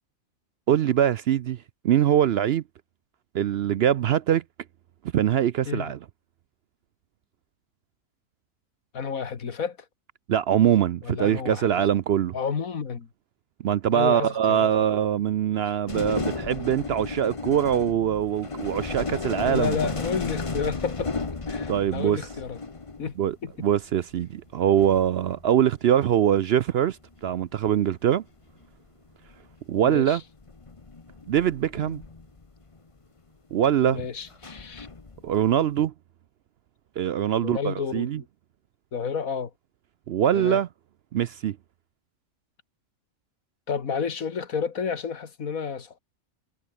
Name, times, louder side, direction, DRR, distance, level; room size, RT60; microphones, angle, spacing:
voice 1, 0.7-2.6 3.3-4.4 5.1-6.0 10.3-12.3 13.6-19.7 21.7-22.2 23.2-27.0 27.2-28.2 29.7-30.2 31.3-32.0 33.5-34.1 35.2-35.9 37.0-38.2 40.1-40.7 41.1-41.6, right 10 dB, 65° right, 0.7 m, -23 dB
voice 2, 8.9-9.8 11.0-11.7 12.3-13.1 13.9-14.7 19.0-22.6 23.0-23.1 23.4-23.7 29.8-30.2 33.8-34.9 37.4-38.3 38.9-39.5 40.3-40.6 43.7-46.0, left 6 dB, 90° left, 2.2 m, -31 dB
sound 1, 15.9-23.3 24.5-24.6 24.8-26.1 27.2-27.5 28.6-28.7 29.2-29.5 30.4-32.8 34.3-35.5, left 3 dB, 25° left, 1.1 m, -34 dB
omnidirectional pair, 1.4 m